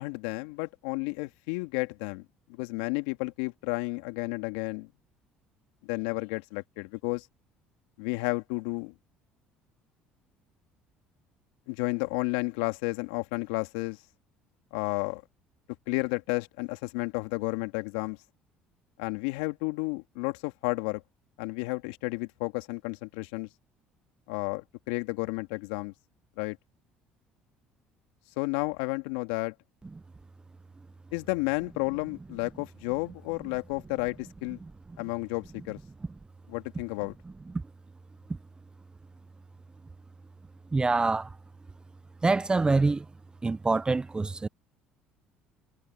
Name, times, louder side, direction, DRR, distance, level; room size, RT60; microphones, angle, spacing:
voice 1, 0.0-2.2 2.6-4.9 5.8-7.3 8.0-8.9 11.7-14.0 14.7-15.2 15.9-18.2 19.0-21.0 21.4-23.5 24.3-25.9 26.4-26.6 28.4-29.5 31.1-34.6 35.0-35.8 36.5-37.1, left 26 dB, 75° left, 2.4 m, -32 dB
voice 2, 40.7-41.3 42.2-43.0 43.4-44.5, right 3 dB, 20° right, 0.9 m, -25 dB
hypercardioid pair, 65°, 4 cm